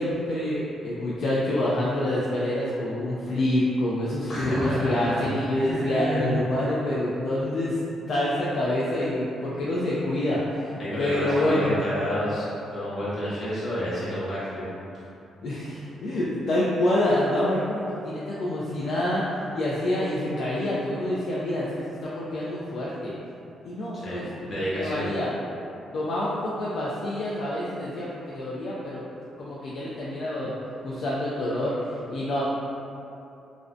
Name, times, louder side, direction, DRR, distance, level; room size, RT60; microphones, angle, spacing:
voice 1, 0.0-7.8 8.1-11.8 15.4-23.2 23.7-25.3 25.9-29.0 29.4-30.5 30.8-32.4, left 1 dB, 60° left, -7 dB, 0.3 m, -27 dB
voice 2, 4.2-5.3 5.6-6.7 10.8-14.6 23.9-25.1, equal, 40° left, -10 dB, 0.9 m, -30 dB
2.5 x 2.1 x 2.4 m, 2.7 s
cardioid pair, 105°, 0 cm